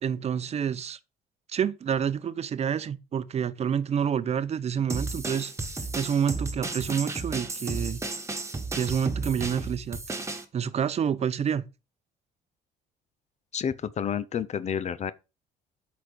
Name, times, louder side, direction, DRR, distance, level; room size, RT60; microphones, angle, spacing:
voice 1, 0.0-1.0 1.5-5.5 6.0-8.0 8.7-10.0 10.5-11.6, right 8 dB, 40° right, 0.7 m, -28 dB
sound 1, 4.9-10.4, right 3 dB, 15° right, 1.5 m, -33 dB
voice 2, 13.5-15.1, left 8 dB, 40° left, 0.7 m, -30 dB
8.0 x 5.2 x 5.1 m
cardioid pair, 110°, 17 cm